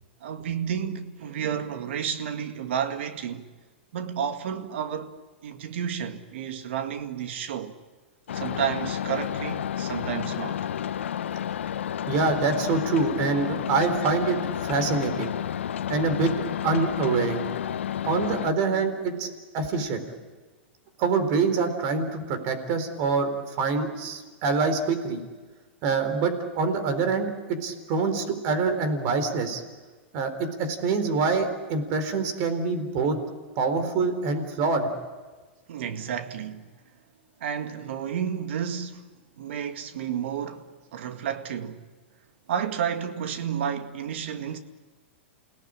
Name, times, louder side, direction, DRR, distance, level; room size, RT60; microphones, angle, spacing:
voice 1, 0.2-3.5 3.9-5.2 5.4-7.8 8.3-10.7 35.7-36.7 37.4-39.1 39.4-41.8 42.5-44.6, right 8 dB, 70° right, 1.9 m, -31 dB
sound 1, 8.3-18.5, left 9 dB, 85° left, 0.8 m, -31 dB
voice 2, 12.1-14.4 14.6-15.3 15.9-16.3 16.6-17.4 18.1-19.3 19.5-20.1 21.0-25.2 25.8-29.6 30.1-33.2 33.6-34.9, right 4 dB, 50° right, 4.1 m, -25 dB
29.0 x 18.0 x 8.8 m
hypercardioid pair, 125°, 6 cm